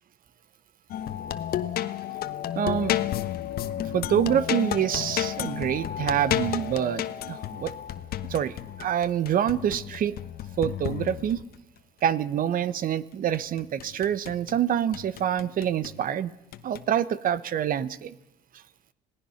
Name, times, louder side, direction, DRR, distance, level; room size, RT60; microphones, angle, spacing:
sound 1, 0.9-11.6 13.3-14.6 14.9-16.0 16.5-16.8, left 11 dB, 65° left, 1.2 m, -32 dB
voice 1, 2.6-3.0 3.9-7.7 8.3-10.2 10.6-11.4 12.0-16.3 16.6-18.1, right 9 dB, 55° right, 17 dB, 1.1 m, -26 dB
27.0 x 18.5 x 5.8 m, 0.83 s
cardioid pair, 110°, 17 cm